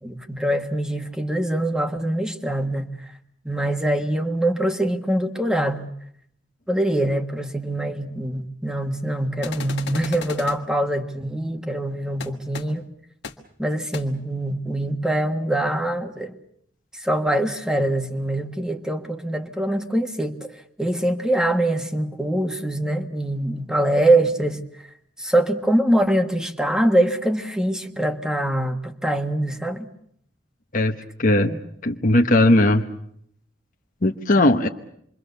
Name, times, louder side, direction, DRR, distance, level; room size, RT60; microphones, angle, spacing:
voice 1, 0.0-2.9 3.4-5.9 6.7-12.8 13.6-16.4 16.9-24.6 25.2-29.9 31.5-31.6, right 1 dB, 5° right, 6 dB, 1.5 m, -23 dB
sound 1, 9.4-10.6 12.2-12.3 12.5-12.6 13.2-13.3 13.9-14.0, left 5 dB, 60° left, 1.7 m, -34 dB
voice 2, 30.7-31.5 31.8-32.9 34.0-34.7, left 1 dB, 45° left, 4 dB, 1.1 m, -18 dB
27.0 x 23.5 x 7.0 m, 0.69 s
head